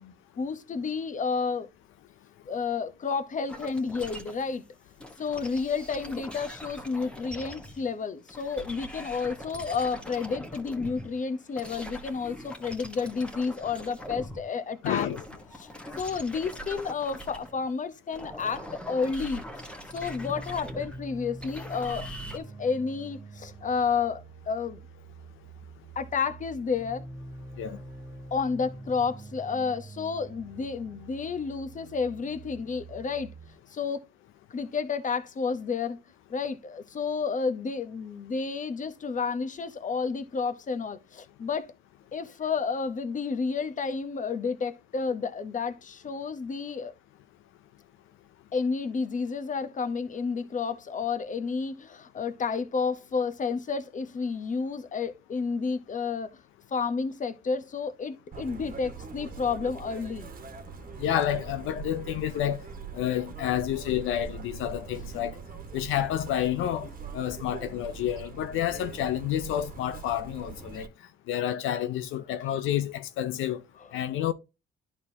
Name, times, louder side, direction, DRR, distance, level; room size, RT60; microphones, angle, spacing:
voice 1, 0.0-1.7 2.5-4.6 5.2-15.1 15.5-15.7 16.0-22.1 22.3-24.8 25.9-27.0 28.3-33.3 33.7-34.0 34.5-36.0 36.3-41.7 42.1-46.9 48.5-56.3 56.7-60.3 64.9-65.3 73.7-74.0, left 5 dB, 40° left, 1.0 m, -31 dB
sound 1, 3.5-4.6 5.0-7.9 8.3-14.5 14.7-17.7 18.1-22.4, equal, 5° left, 1.3 m, -42 dB
voice 2, 14.8-15.2 27.6-27.8 61.0-62.6 62.9-65.4 65.7-66.9 67.1-70.9 71.3-73.6 73.9-74.3, left 11 dB, 85° left, 0.6 m, -29 dB
sound 2, 19.8-33.5, right 2 dB, 20° right, 1.4 m, -45 dB
Chirp tweet, 58.3-70.9, right 5 dB, 45° right, 1.4 m, -42 dB
11.0 x 4.4 x 2.8 m
cardioid pair, 90°, 20 cm